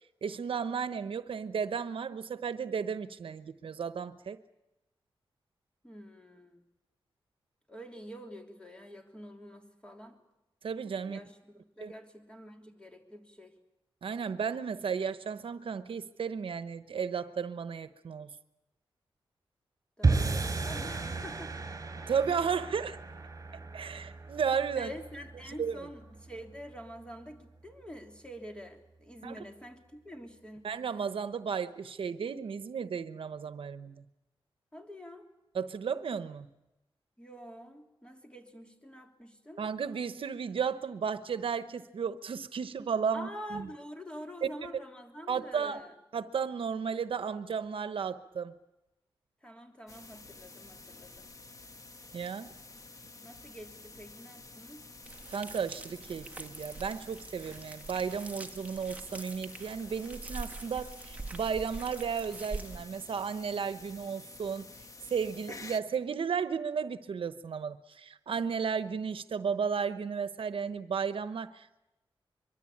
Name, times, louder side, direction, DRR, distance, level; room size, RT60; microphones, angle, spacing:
voice 1, 0.2-4.4 10.6-11.2 11.8-11.9 14.0-18.3 22.1-23.0 23.7-24.9 25.6-25.9 29.2-29.4 30.6-34.0 35.5-36.5 39.6-43.7 44.4-44.5 45.3-45.8 46.1-48.5 52.1-52.5 55.3-64.7 65.1-71.7, right 6 dB, 70° right, 12 dB, 1.0 m, -34 dB
voice 2, 5.8-6.6 7.7-10.2 11.0-13.5 20.0-21.5 24.7-30.7 34.7-35.3 37.2-39.6 43.1-45.9 49.4-51.3 53.2-54.8, equal, 10° left, 3 dB, 3.3 m, -47 dB
sound 1, 20.0-26.4, right 3 dB, 35° right, 4.3 m, -34 dB
sound 2, 49.9-65.8, left 3 dB, 35° left, 1.4 m, -50 dB
sound 3, 55.0-62.8, right 3 dB, 15° right, 1.7 m, -44 dB
24.0 x 23.5 x 8.7 m, 0.96 s
wide cardioid pair, 145°, 9 cm